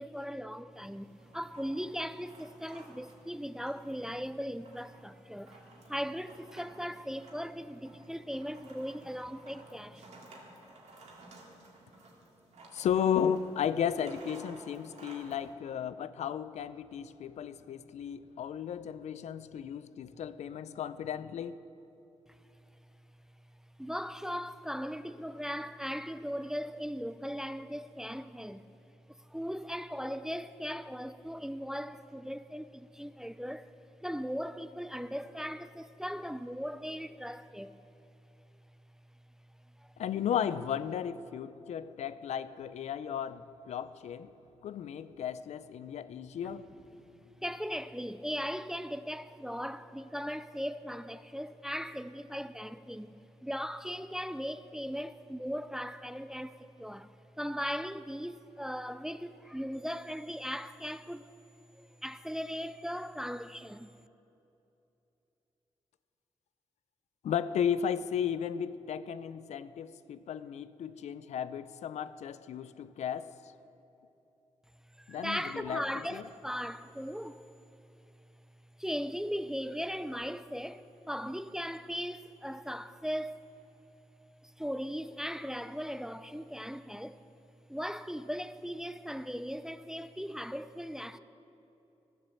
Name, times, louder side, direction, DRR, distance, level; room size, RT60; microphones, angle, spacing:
voice 1, 0.0-5.6 5.9-10.1 23.8-28.7 29.1-33.7 34.0-37.8 47.4-61.4 62.0-63.9 75.0-77.5 78.8-83.4 84.4-87.2 87.7-91.2, equal, 5° right, 0.3 m, -38 dB
sound 1, 0.7-15.5, right 2 dB, 75° right, 1.9 m, -55 dB
voice 2, 12.7-21.6 40.0-44.3 44.6-46.8 67.2-73.3 75.1-75.8 76.1-76.2, left 8 dB, 80° left, 0.4 m, -34 dB
12.5 x 7.2 x 7.0 m
cardioid pair, 95°, 12 cm